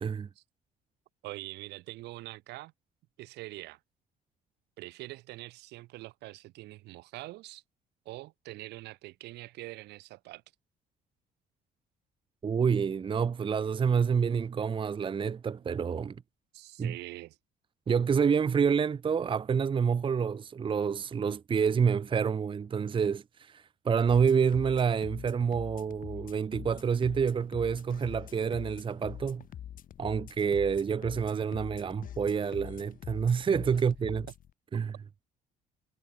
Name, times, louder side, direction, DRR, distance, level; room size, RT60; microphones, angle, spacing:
voice 1, 1.2-2.7 3.2-3.8 4.8-7.6 8.1-10.4 16.5-17.4, right 18 dB, 85° right, 3.8 m, -44 dB
voice 2, 12.4-16.2 16.8-16.9 17.9-29.4 30.0-34.2 34.7-34.9, right 6 dB, 30° right, 0.9 m, -28 dB
sound 1, 24.1-34.5, left 10 dB, 55° left, 2.5 m, -45 dB
cardioid pair, 110°, 17 cm